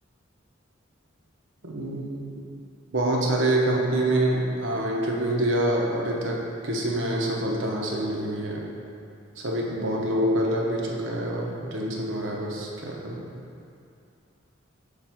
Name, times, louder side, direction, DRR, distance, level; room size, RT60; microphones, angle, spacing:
voice 1, 1.6-2.2 2.9-6.4 6.6-8.6 9.4-13.2, right 1 dB, 70° right, -2 dB, 0.9 m, -26 dB
6.6 x 3.9 x 4.5 m, 2.5 s
head